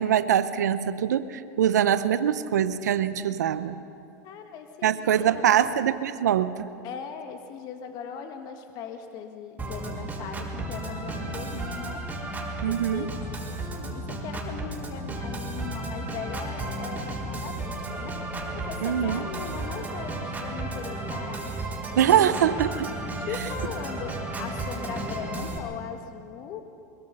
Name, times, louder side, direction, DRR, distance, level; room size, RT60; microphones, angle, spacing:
voice 1, 0.0-3.8 4.8-6.7 12.6-13.1 18.8-19.2 22.0-22.9, right 9 dB, 85° right, 13 dB, 0.8 m, -23 dB
voice 2, 4.2-5.9 6.8-12.0 12.7-18.1 18.6-21.5 23.2-26.6, left 7 dB, 50° left, 6 dB, 1.8 m, -39 dB
Organ, 9.6-25.6, right 2 dB, 15° right, 4.0 m, -33 dB
22.0 x 22.0 x 5.5 m, 2.5 s
hypercardioid pair, 105°, 9 cm